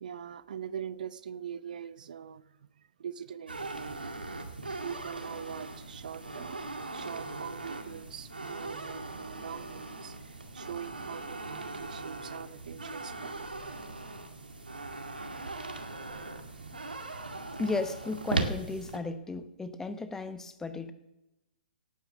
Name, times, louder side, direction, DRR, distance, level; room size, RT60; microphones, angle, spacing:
voice 1, 0.0-2.4 3.0-4.1 4.8-6.6 6.9-13.5, right 8 dB, 60° right, 17 dB, 0.6 m, -42 dB
sound 1, 3.5-19.0, right 3 dB, 80° right, 2.1 m, -39 dB
voice 2, 17.6-20.9, left 3 dB, 10° left, 11 dB, 1.0 m, -35 dB
18.0 x 9.2 x 6.3 m, 0.92 s
figure-of-eight pair, 120°, 5 cm